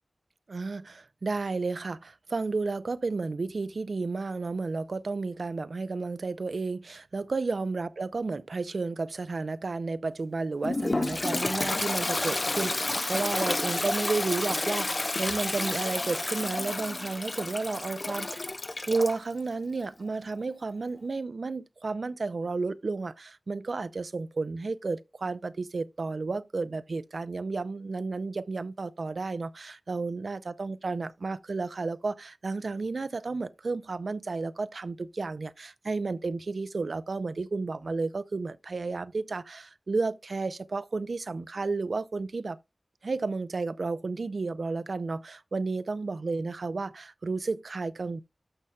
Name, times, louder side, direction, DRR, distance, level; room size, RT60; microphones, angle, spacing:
voice 1, 0.5-18.5 18.9-42.6 43.0-48.2, right 3 dB, 80° right, 0.5 m, -32 dB
Toilet flush, 10.6-19.2, left 2 dB, 40° left, 0.3 m, -30 dB
12.0 x 5.6 x 2.3 m
wide cardioid pair, 80°, 0 cm